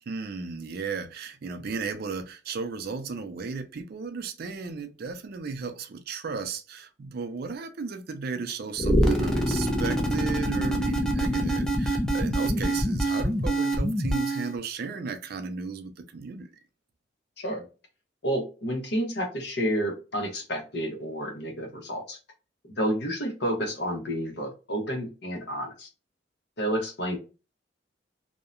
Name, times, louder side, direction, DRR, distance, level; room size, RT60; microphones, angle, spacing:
voice 1, 0.1-16.5, right 4 dB, 55° right, 0.4 m, -35 dB
sound 1, 8.8-14.6, right 1 dB, 5° left, 0.4 m, -25 dB
voice 2, 17.4-17.7 18.2-22.2 22.8-25.9 26.6-27.2, equal, 65° left, 1.0 m, -30 dB
2.7 x 2.1 x 2.4 m
head